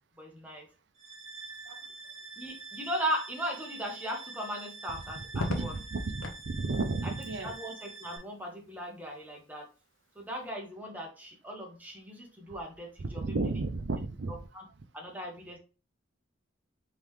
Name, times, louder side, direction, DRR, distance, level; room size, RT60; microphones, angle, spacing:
voice 1, 0.2-0.7 2.4-5.7 7.0-7.1 7.4-9.7 10.2-13.3 14.5-14.6 14.9-15.6, equal, 10° right, 0.9 m, -37 dB
sound 1, 1.0-8.2, right 3 dB, 35° right, 1.1 m, -46 dB
Crackle, 5.3-6.5 8.1-8.6, left 2 dB, 90° left, 0.8 m, -37 dB
voice 2, 5.3-7.5 13.0-14.4, right 3 dB, 60° right, 0.5 m, -33 dB
3.7 x 3.3 x 3.1 m
head